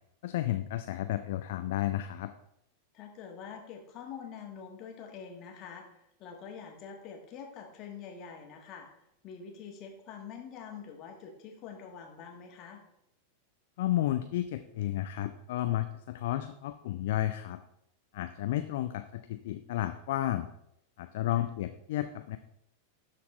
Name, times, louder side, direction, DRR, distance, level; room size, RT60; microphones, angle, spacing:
voice 1, 0.2-2.3 13.8-17.6 18.1-20.5 21.0-22.4, left 13 dB, 55° left, 9 dB, 0.4 m, -32 dB
voice 2, 2.9-8.9 9.2-12.8 21.3-21.4, left 6 dB, 35° left, 2 dB, 1.5 m, -45 dB
12.5 x 4.2 x 3.1 m, 0.77 s
figure-of-eight pair, 90°, 0 cm